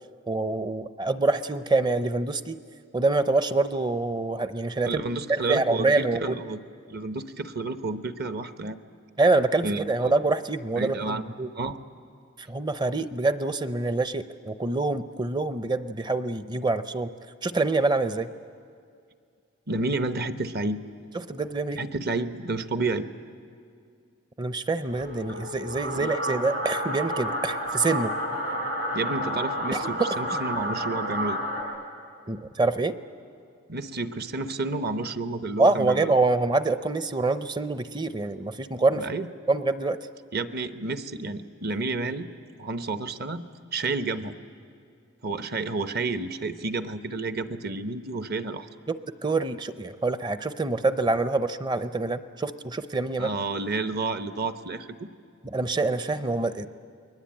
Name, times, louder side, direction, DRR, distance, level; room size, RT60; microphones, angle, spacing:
voice 1, 0.3-2.6 2.9-5.0 5.3-6.4 9.2-11.5 12.5-17.1 17.4-18.3 21.1-21.8 24.4-28.1 29.7-30.2 32.3-33.0 35.6-39.0 39.5-40.0 48.9-53.3 55.4-56.7, right 3 dB, 20° right, 12 dB, 0.6 m, -26 dB
voice 2, 4.8-6.6 6.9-8.8 9.6-10.1 10.8-11.2 11.5-11.8 19.7-20.8 21.8-23.1 25.9-26.1 28.9-31.4 33.7-36.1 38.9-39.3 40.3-42.3 42.6-43.4 43.7-44.3 45.2-48.7 53.2-55.1, right 3 dB, 50° right, 10 dB, 0.9 m, -30 dB
sound 1, 24.9-31.6, equal, 65° right, 5.1 m, -30 dB
29.5 x 21.5 x 8.8 m, 2.3 s
head